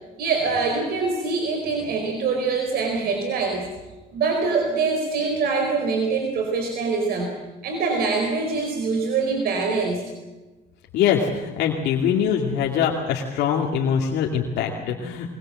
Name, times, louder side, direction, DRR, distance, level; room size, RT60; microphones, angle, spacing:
voice 1, 0.2-3.7 4.1-7.3 7.6-10.0, right 4 dB, 65° right, 3 dB, 4.6 m, -24 dB
voice 2, 10.9-15.3, left 7 dB, 80° left, -1 dB, 2.4 m, -23 dB
22.0 x 21.5 x 7.8 m, 1.2 s
cardioid pair, 110°, 17 cm